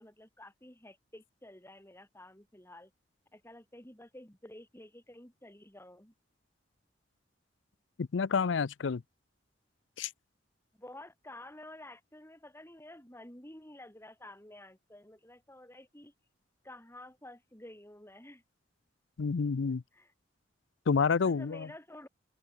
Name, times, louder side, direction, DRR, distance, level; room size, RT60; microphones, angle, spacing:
voice 1, 0.0-2.9 3.3-6.1 10.7-16.1 16.6-18.4 19.9-20.1 21.2-22.1, left 1 dB, 15° left, 5.2 m, -51 dB
voice 2, 8.0-9.0 10.0-10.1 19.2-19.8 20.9-21.7, left 5 dB, 80° left, 0.5 m, -29 dB
open air
head